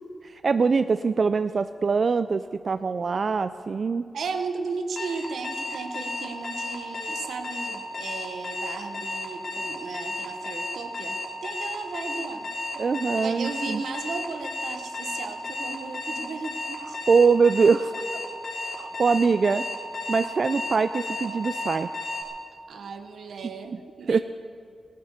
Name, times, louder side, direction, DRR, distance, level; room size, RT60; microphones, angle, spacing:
voice 1, 0.2-4.1 12.8-13.8 17.1-17.9 18.7-19.6 20.1-21.9 24.1-24.2, right 5 dB, 55° right, 11 dB, 0.4 m, -23 dB
voice 2, 4.1-12.5 13.2-17.0 22.7-24.2, right 4 dB, 85° right, 7 dB, 1.2 m, -35 dB
Alarm, 5.0-22.2, left 2 dB, 65° left, 2.9 m, -33 dB
16.0 x 11.0 x 7.2 m, 2.3 s
cardioid pair, 75°, 0 cm